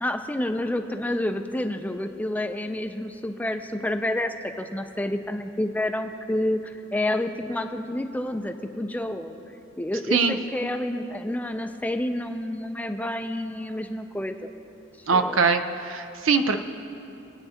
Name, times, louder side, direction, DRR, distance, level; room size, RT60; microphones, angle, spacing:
voice 1, 0.0-9.4 9.8-14.4 15.1-15.4, left 1 dB, 10° left, 6 dB, 0.4 m, -29 dB
voice 2, 15.1-16.6, right 5 dB, 80° right, 7 dB, 0.6 m, -22 dB
26.5 x 8.9 x 2.8 m, 2.9 s
head